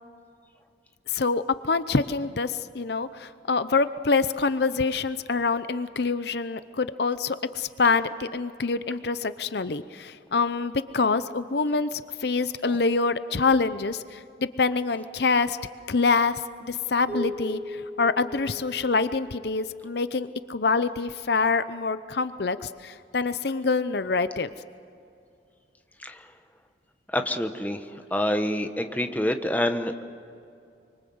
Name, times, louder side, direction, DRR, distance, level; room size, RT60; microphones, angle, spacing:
voice 1, 1.1-15.6 15.9-24.5, left 4 dB, 60° left, 13 dB, 0.7 m, -26 dB
sound 1, 17.1-19.6, left 1 dB, 10° right, 4.8 m, -37 dB
voice 2, 27.1-27.8 28.1-29.9, left 1 dB, 10° left, 6 dB, 1.1 m, -26 dB
25.0 x 25.0 x 7.9 m, 2.5 s
head